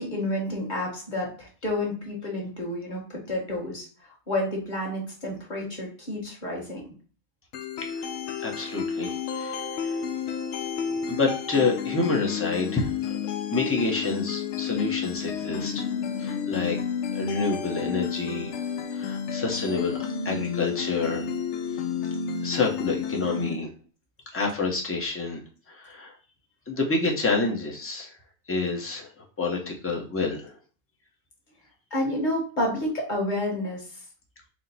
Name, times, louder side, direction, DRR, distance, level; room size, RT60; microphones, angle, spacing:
voice 1, 0.0-3.9 4.3-6.8 31.9-33.8, left 1 dB, 35° left, -2 dB, 1.4 m, -30 dB
sound 1, 7.5-23.5, left 7 dB, 65° left, 0.8 m, -31 dB
voice 2, 8.4-10.0 11.1-13.2 13.5-15.9 16.2-16.8 17.1-18.5 18.9-21.3 22.4-23.7 24.3-25.4 25.7-26.1 26.7-28.2 28.5-29.1 29.4-30.5, left 3 dB, 15° left, 0 dB, 0.5 m, -28 dB
4.4 x 2.1 x 4.0 m, 0.40 s
omnidirectional pair, 1.4 m